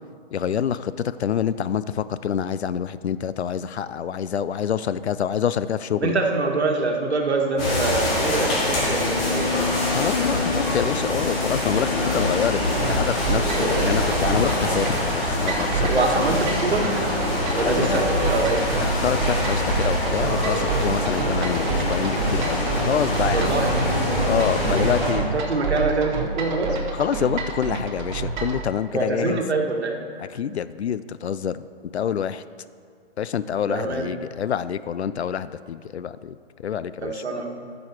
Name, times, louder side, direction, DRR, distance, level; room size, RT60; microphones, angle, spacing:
voice 1, 0.3-6.2 9.9-16.0 17.6-18.0 18.8-23.6 24.2-25.3 27.0-29.4 30.2-31.7 31.9-32.4 33.2-37.2, left 8 dB, 90° left, 15 dB, 0.5 m, -27 dB
voice 2, 6.0-9.8 13.6-13.9 15.9-16.9 17.5-18.6 23.3-23.8 24.7-26.8 28.9-30.0 33.7-34.1 37.0-37.6, right 3 dB, 85° right, 2 dB, 1.7 m, -25 dB
sound 1, 7.6-25.1, left 2 dB, 20° left, 2.1 m, -24 dB
sound 2, 12.7-28.6, right 4 dB, 45° right, 1.4 m, -28 dB
14.0 x 6.3 x 4.5 m, 2.1 s
hypercardioid pair, 150°, 32 cm